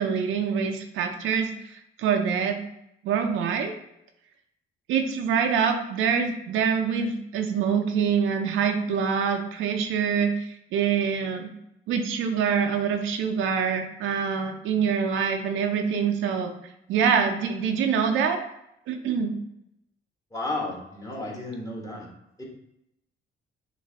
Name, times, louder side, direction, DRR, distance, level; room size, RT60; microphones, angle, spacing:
voice 1, 0.0-1.5 2.0-2.6 3.0-3.7 4.9-10.3 10.7-11.5 11.9-16.5 16.9-18.4 18.9-19.3, right 6 dB, 85° right, 5 dB, 0.5 m, -25 dB
voice 2, 20.3-22.1 22.4-22.5, left 2 dB, 20° left, -2 dB, 1.3 m, -33 dB
5.9 x 2.6 x 2.8 m, 0.82 s
cardioid pair, 90°, 20 cm